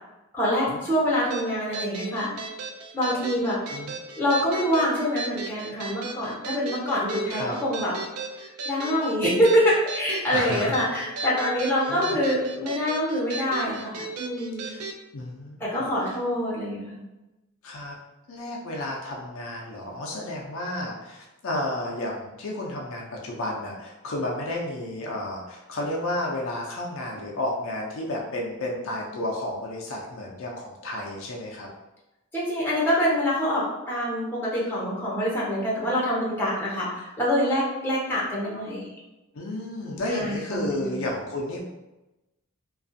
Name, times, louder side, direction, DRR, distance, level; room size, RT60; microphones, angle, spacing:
voice 1, 0.3-2.3 2.9-3.6 4.2-7.9 8.6-14.7 15.7-17.0 32.3-38.8 40.1-41.0, equal, 10° left, -7 dB, 0.7 m, -25 dB
sound 1, 1.3-15.0, right 3 dB, 85° right, 0.4 m, -36 dB
voice 2, 10.3-10.9 11.9-12.2 14.6-14.8 15.1-15.7 17.6-18.0 18.3-31.7 39.3-41.6, left 1 dB, 65° left, -2 dB, 0.4 m, -32 dB
2.4 x 2.3 x 2.6 m, 1.0 s
head